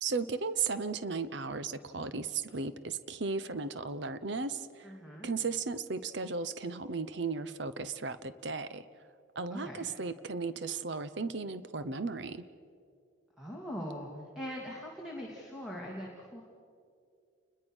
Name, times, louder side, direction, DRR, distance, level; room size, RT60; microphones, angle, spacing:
voice 1, 0.0-5.0 5.2-8.9 9.4-12.4, right 4 dB, 60° right, 13 dB, 0.8 m, -35 dB
voice 2, 4.8-5.3 9.5-9.9 13.4-14.1 14.3-16.4, equal, ahead, -3 dB, 2.6 m, -41 dB
30.0 x 21.0 x 6.3 m, 2.4 s
head